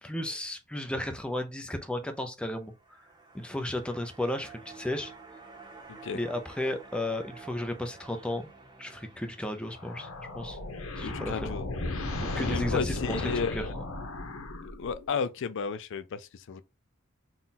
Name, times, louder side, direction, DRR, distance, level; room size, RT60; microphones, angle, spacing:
voice 1, 0.0-2.7 3.3-5.1 6.1-8.5 8.8-10.1 10.3-10.6 11.0-11.5 12.4-13.7, left 1 dB, 5° left, 0.5 m, -34 dB
sound 1, 2.6-13.0 13.3-13.4, right 4 dB, 20° right, 0.8 m, -52 dB
voice 2, 5.9-6.2 11.0-11.7 12.4-13.5 14.8-16.6, left 5 dB, 60° left, 0.4 m, -33 dB
sound 2, 9.7-15.1, left 2 dB, 75° left, 0.9 m, -35 dB
3.7 x 2.3 x 4.1 m
head